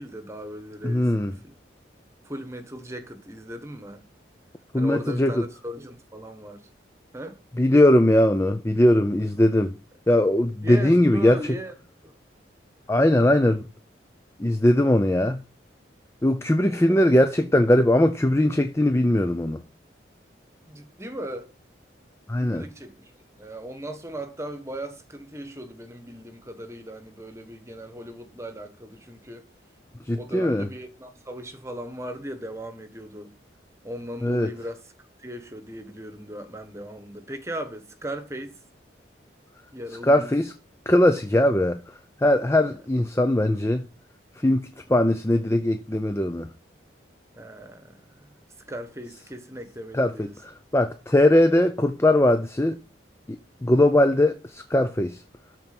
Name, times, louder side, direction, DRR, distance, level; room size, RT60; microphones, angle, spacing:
voice 1, 0.0-1.5 2.2-4.0 4.8-6.7 7.1-7.4 10.6-11.7 12.0-12.1 16.7-17.0 20.7-21.5 22.4-23.1 23.4-29.5 30.1-33.3 33.8-34.8 35.2-38.6 39.7-40.4 47.3-48.4 48.7-50.3, equal, 15° right, 1.3 m, -38 dB
voice 2, 0.8-1.3 4.7-5.4 7.6-9.8 10.1-11.6 12.9-13.7 14.4-15.4 16.2-19.6 22.3-22.6 30.1-30.7 34.2-34.5 40.0-40.5 40.9-41.8 42.2-43.9 44.4-46.5 49.9-50.3 50.7-52.8 53.3-53.4 53.6-55.2, left 1 dB, 15° left, 0.5 m, -20 dB
13.0 x 4.6 x 5.9 m
head